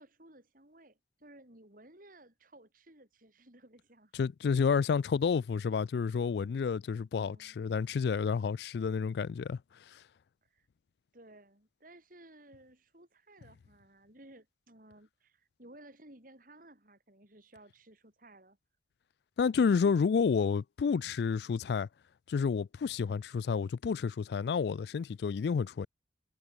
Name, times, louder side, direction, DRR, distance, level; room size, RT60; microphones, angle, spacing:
voice 1, 0.0-4.1 4.6-4.8 7.2-7.6 10.4-10.7 11.1-18.6, right 1 dB, 50° right, 6.4 m, -57 dB
voice 2, 4.2-9.6 9.9-10.0 19.4-21.9 22.3-25.9, left 5 dB, 65° left, 0.3 m, -30 dB
head